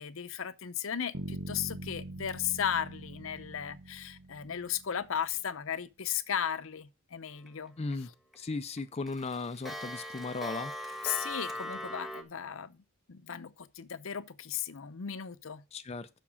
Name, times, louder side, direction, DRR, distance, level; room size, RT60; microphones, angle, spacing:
voice 1, 0.0-7.8 11.0-12.8 13.1-15.6, left 9 dB, 70° left, 0.7 m, -36 dB
Bass guitar, 1.1-5.2, right 1 dB, 90° right, 1.6 m, -43 dB
Clock, 7.5-7.9 8.3-8.4 8.8-12.2, equal, ahead, 1.3 m, -39 dB
voice 2, 7.8-8.1 8.3-10.7 15.7-16.1, left 3 dB, 30° left, 0.5 m, -36 dB
7.3 x 5.9 x 7.0 m
head